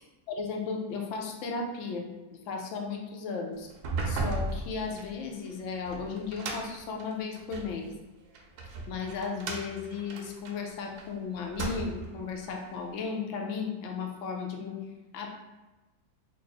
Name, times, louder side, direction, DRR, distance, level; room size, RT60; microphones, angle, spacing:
voice 1, 0.3-3.7 4.0-7.9 8.9-14.8 15.1-15.3, left 5 dB, 65° left, 2 dB, 0.8 m, -35 dB
sound 1, 3.7-7.8 8.3-11.1 11.4-12.2, right 2 dB, 90° right, 1.1 m, -36 dB
3.3 x 2.0 x 4.1 m, 1.1 s
omnidirectional pair, 1.6 m